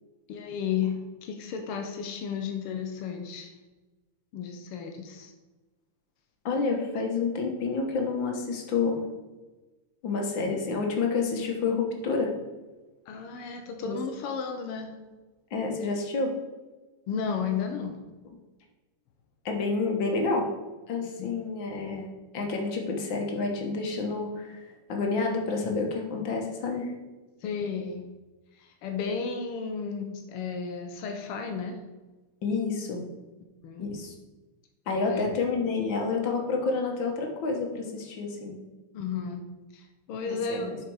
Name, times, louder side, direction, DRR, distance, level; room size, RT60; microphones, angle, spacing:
voice 1, 0.3-3.5 4.3-5.3 13.1-14.9 17.1-18.0 21.2-21.3 27.4-28.1 28.6-31.8 33.6-33.9 35.1-35.3 38.9-39.4 39.7-40.7, left 6 dB, 85° left, 4 dB, 1.8 m, -33 dB
voice 2, 6.5-9.0 10.0-12.3 13.8-14.0 15.5-16.4 19.5-20.5 20.9-22.1 22.3-26.9 32.4-33.0 33.8-34.1 34.9-38.6 40.3-40.8, left 4 dB, 60° left, 2 dB, 1.9 m, -29 dB
7.5 x 5.0 x 4.8 m, 1.2 s
omnidirectional pair, 2.4 m